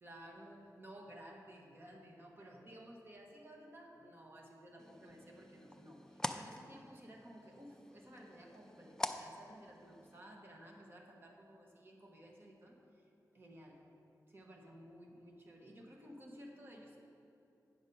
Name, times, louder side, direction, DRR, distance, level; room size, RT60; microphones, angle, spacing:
voice 1, 0.0-13.8 14.3-17.0, equal, 35° right, 0 dB, 1.1 m, -55 dB
sound 1, 4.8-10.2, left 1 dB, 10° left, 0.3 m, -46 dB
8.7 x 6.2 x 5.4 m, 2.8 s
wide cardioid pair, 150°, 7 cm